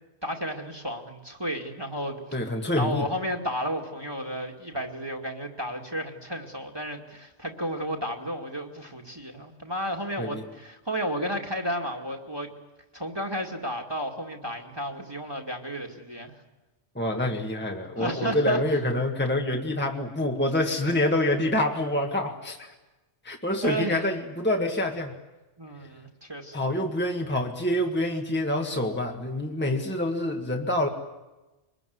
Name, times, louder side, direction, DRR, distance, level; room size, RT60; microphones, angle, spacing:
voice 1, 0.2-2.2 2.8-12.5 12.9-16.3 18.0-18.6 23.6-24.0 25.6-26.5, equal, 20° right, 2 dB, 2.3 m, -32 dB
voice 2, 2.3-3.1 10.2-10.4 16.9-22.7 23.2-25.1 26.5-30.9, left 1 dB, 10° left, 2 dB, 1.7 m, -26 dB
24.5 x 21.5 x 9.5 m, 1.1 s
omnidirectional pair, 1.2 m